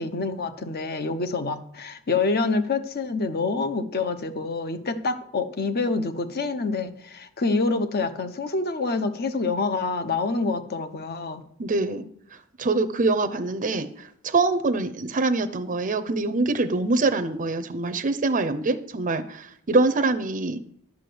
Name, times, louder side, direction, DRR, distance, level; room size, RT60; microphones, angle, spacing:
voice 1, 0.0-11.4, left 3 dB, 45° left, 10 dB, 0.8 m, -27 dB
voice 2, 11.6-12.0 12.6-13.9 14.2-20.6, right 3 dB, 35° right, 8 dB, 0.6 m, -24 dB
11.5 x 4.9 x 7.8 m, 0.68 s
head